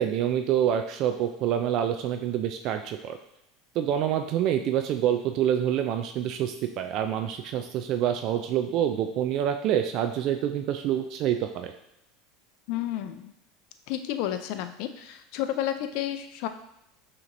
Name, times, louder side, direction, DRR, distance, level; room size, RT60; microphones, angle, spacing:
voice 1, 0.0-3.2 3.8-11.7, right 10 dB, 55° right, 6 dB, 0.3 m, -27 dB
voice 2, 12.7-13.3 13.9-16.5, left 12 dB, 65° left, 9 dB, 0.4 m, -31 dB
5.7 x 2.9 x 2.6 m, 0.84 s
hypercardioid pair, 95°, 0 cm